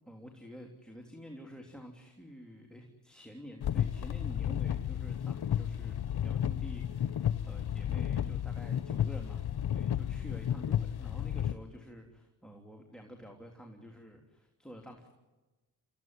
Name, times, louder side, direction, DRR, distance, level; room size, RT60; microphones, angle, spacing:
voice 1, 0.0-6.0 6.2-9.5 9.7-15.1, equal, ahead, 1 dB, 3.3 m, -49 dB
sound 1, 3.6-11.5, left 10 dB, 65° left, 0.9 m, -32 dB
26.5 x 15.5 x 9.6 m, 1.2 s
cardioid pair, 50°, 41 cm